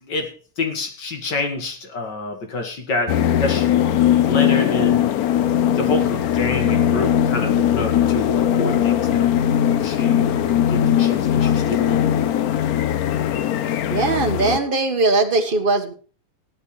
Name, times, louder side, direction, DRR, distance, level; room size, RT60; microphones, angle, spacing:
voice 1, 0.0-3.7 4.2-5.1 5.8-9.3 9.8-10.3 10.7-12.0, left 2 dB, 50° left, 5 dB, 2.5 m, -27 dB
sound 1, 3.1-14.6, left 10 dB, 80° left, 0.8 m, -19 dB
voice 2, 13.9-15.9, right 3 dB, 25° right, 5 dB, 1.4 m, -20 dB
16.0 x 11.5 x 3.3 m, 0.37 s
omnidirectional pair, 2.4 m